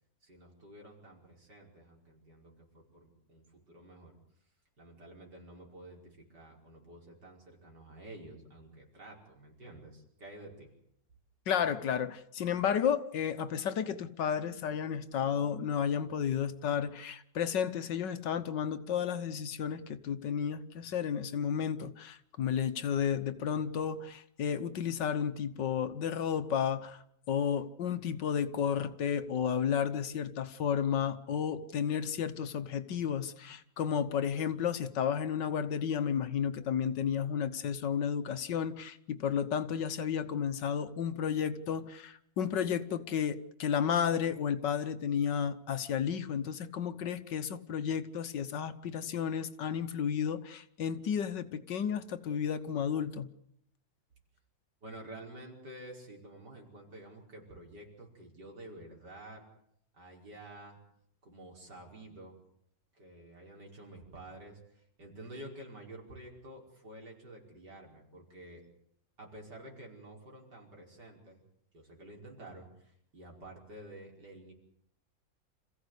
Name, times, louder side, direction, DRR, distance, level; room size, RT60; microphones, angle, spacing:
voice 1, 0.2-4.2 4.8-10.7 54.8-59.4 59.9-60.8 61.2-62.4 62.9-68.6 69.2-71.4 71.7-74.5, right 1 dB, 60° right, 0 dB, 5.9 m, -50 dB
voice 2, 11.5-27.0 27.3-53.3, left 8 dB, 70° left, 12 dB, 1.7 m, -32 dB
27.5 x 15.5 x 8.2 m, 0.73 s
omnidirectional pair, 2.0 m